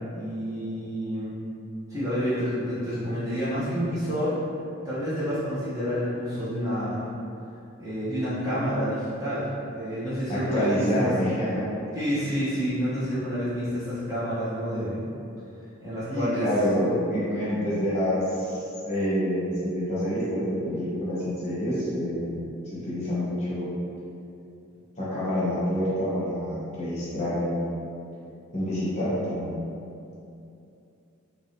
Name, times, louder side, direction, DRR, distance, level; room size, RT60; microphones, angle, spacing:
voice 1, 0.1-1.4 1.9-4.4 4.8-7.1 7.8-11.2 11.9-15.0 15.8-16.5, equal, 15° right, -13 dB, 0.8 m, -29 dB
voice 2, 10.3-11.6 16.1-22.4 22.8-23.7 25.0-27.7 28.5-29.5, equal, 30° left, -10 dB, 1.0 m, -27 dB
3.6 x 3.0 x 2.7 m, 2.7 s
head